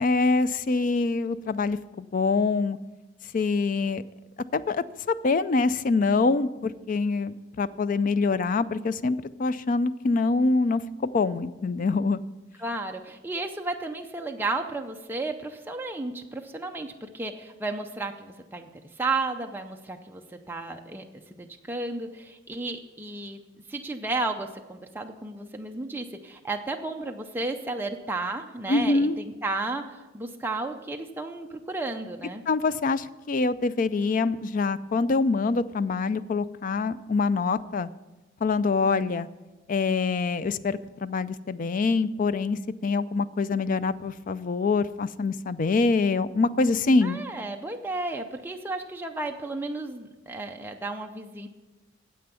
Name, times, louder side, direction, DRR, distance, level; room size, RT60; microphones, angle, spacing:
voice 1, 0.0-2.8 3.3-4.0 4.5-12.2 28.7-29.2 32.5-37.9 38.4-39.3 39.7-47.2, left 3 dB, 40° left, 15 dB, 0.4 m, -25 dB
voice 2, 12.6-18.7 19.0-21.0 21.3-23.4 23.7-32.4 47.0-51.5, right 2 dB, 10° right, 3 dB, 0.5 m, -33 dB
9.5 x 7.8 x 6.9 m, 1.1 s
head